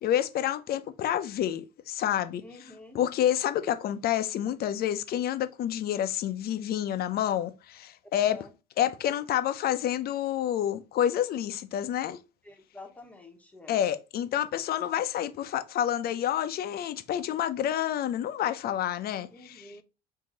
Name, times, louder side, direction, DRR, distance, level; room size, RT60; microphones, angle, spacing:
voice 1, 0.0-2.4 2.9-8.4 8.8-12.2 13.7-19.7, left 11 dB, 50° left, 0.7 m, -28 dB
voice 2, 2.4-3.0 8.1-8.5 12.4-13.8 19.3-19.8, left 2 dB, 5° left, 1.2 m, -48 dB
4.6 x 2.8 x 4.0 m
supercardioid pair, 95°, 20 cm